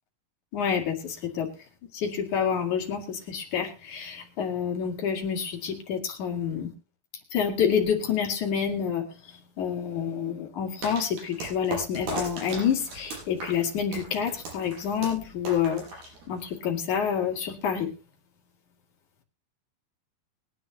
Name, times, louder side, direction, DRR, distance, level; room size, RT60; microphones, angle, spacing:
voice 1, 0.5-1.5 1.9-6.7 7.3-9.1 9.6-15.8 16.3-17.9, left 7 dB, 55° left, 2 dB, 3.6 m, -28 dB
sound 1, 10.8-16.6, right 2 dB, 75° right, 7.7 m, -38 dB
23.0 x 9.8 x 2.8 m, 0.30 s
omnidirectional pair, 4.5 m